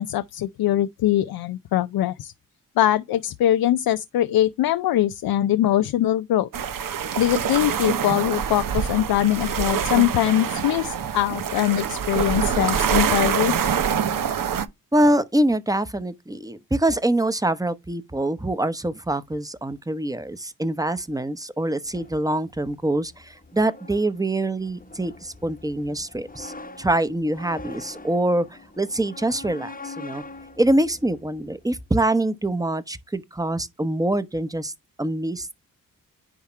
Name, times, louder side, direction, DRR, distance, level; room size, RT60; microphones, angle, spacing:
voice 1, 0.0-2.3 2.8-6.5 7.2-13.5, left 13 dB, 90° left, 0.5 m, -22 dB
sound 1, 6.5-14.7, right 8 dB, 70° right, 0.9 m, -25 dB
voice 2, 14.9-30.2 30.6-34.7 35.0-35.5, right 1 dB, 10° right, 0.9 m, -24 dB
sound 2, 21.9-31.8, left 3 dB, 25° left, 1.0 m, -43 dB
10.0 x 3.5 x 4.4 m
cardioid pair, 70°, 35 cm